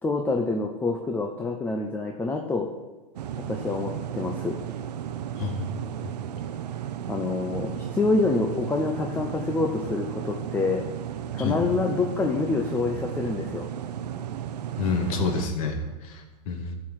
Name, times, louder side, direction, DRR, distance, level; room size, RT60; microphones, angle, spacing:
voice 1, 0.0-2.7 3.5-4.6 7.1-10.8 11.3-13.7, left 3 dB, 10° left, 1 dB, 0.7 m, -26 dB
sound 1, 3.2-15.5, right 9 dB, 80° right, 0.8 m, -34 dB
voice 2, 14.8-16.7, left 4 dB, 55° left, 2 dB, 2.2 m, -28 dB
13.5 x 4.8 x 7.5 m, 1.2 s
hypercardioid pair, 135°, 21 cm